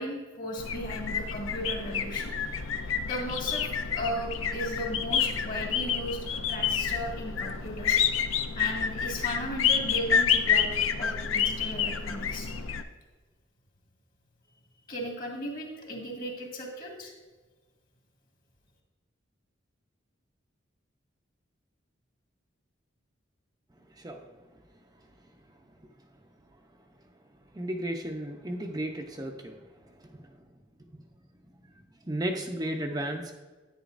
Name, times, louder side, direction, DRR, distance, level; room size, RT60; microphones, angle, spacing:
voice 1, 0.0-8.0 8.5-10.7 11.0-12.5 14.9-17.1, equal, 45° left, 0 dB, 1.9 m, -36 dB
sound 1, 0.6-12.8, left 7 dB, 90° left, 0.6 m, -29 dB
voice 2, 27.6-29.3 32.1-33.3, right 1 dB, 20° right, 2 dB, 0.6 m, -33 dB
10.0 x 9.6 x 2.5 m, 1.3 s
head